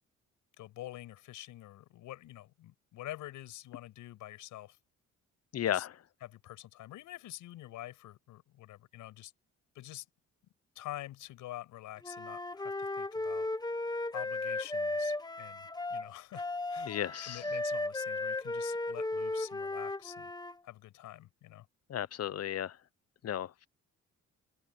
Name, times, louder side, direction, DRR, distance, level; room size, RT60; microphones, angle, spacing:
voice 1, 0.6-4.8 5.7-5.9 6.2-9.3 9.7-10.0 10.7-13.5 14.1-20.3 20.6-21.7, left 14 dB, 90° left, 6.1 m, -47 dB
voice 2, 5.5-5.9 16.8-17.4 21.9-22.8 23.2-23.7, left 11 dB, 55° left, 0.9 m, -34 dB
Wind instrument woodwind instrument, 12.0-20.5, left 2 dB, 15° left, 1.5 m, -35 dB
cardioid pair, 90°, 30 cm